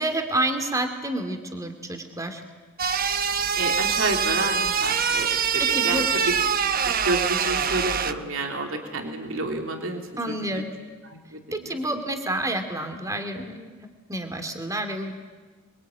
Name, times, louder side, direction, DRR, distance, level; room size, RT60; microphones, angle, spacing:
voice 1, 0.0-2.4 5.6-6.1 10.2-10.7 11.5-13.6 14.1-15.2, right 1 dB, 15° right, 6 dB, 2.5 m, -29 dB
sound 1, 2.8-8.1, right 7 dB, 45° right, 1.0 m, -24 dB
voice 2, 3.6-6.0 7.1-10.6 11.1-12.0, right 2 dB, 75° right, 3 dB, 3.1 m, -30 dB
27.5 x 23.0 x 9.1 m, 1.4 s
head